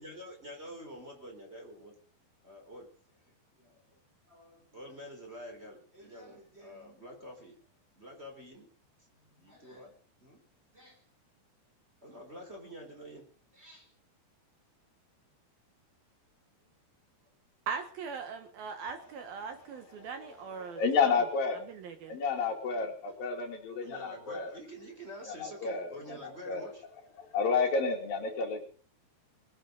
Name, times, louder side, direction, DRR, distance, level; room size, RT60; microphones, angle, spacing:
voice 1, 0.0-1.9 2.4-2.9 3.6-3.7 4.3-7.6 8.0-8.7 9.1-10.4 10.7-11.0 12.0-13.3 13.5-13.9 23.8-26.8, equal, 15° right, 2 dB, 3.9 m, -48 dB
voice 2, 17.7-21.1 21.7-22.2, right 6 dB, 65° right, 7 dB, 3.0 m, -40 dB
voice 3, 20.5-21.7 22.1-24.5 25.3-26.6 27.2-28.6, left 5 dB, 60° left, 2 dB, 4.2 m, -31 dB
21.5 x 10.5 x 5.3 m, 0.40 s
omnidirectional pair, 5.0 m